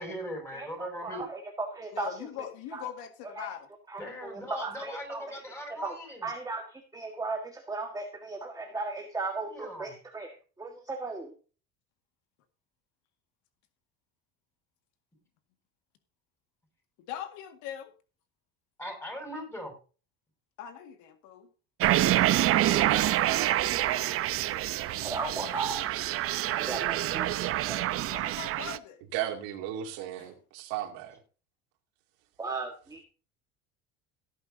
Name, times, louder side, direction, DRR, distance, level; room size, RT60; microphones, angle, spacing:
voice 1, 0.0-1.2 4.0-6.3 9.5-9.9 18.8-19.7 22.7-22.9, equal, 10° left, 6.5 m, -39 dB
voice 2, 0.5-2.2 2.7-2.8 3.4-3.5 3.9-5.4 5.7-11.3 25.0-25.9 26.6-27.8 32.4-33.0, right 3 dB, 10° right, 1.6 m, -36 dB
voice 3, 1.9-3.7 17.0-17.9 20.6-21.5 28.1-29.0 30.2-30.3, left 10 dB, 70° left, 2.0 m, -41 dB
sound 1, 21.8-28.8, right 14 dB, 45° right, 0.7 m, -27 dB
voice 4, 22.9-25.1 25.4-25.7 29.1-31.2, right 12 dB, 80° right, 2.6 m, -37 dB
17.5 x 9.4 x 2.7 m
cardioid pair, 125°, 31 cm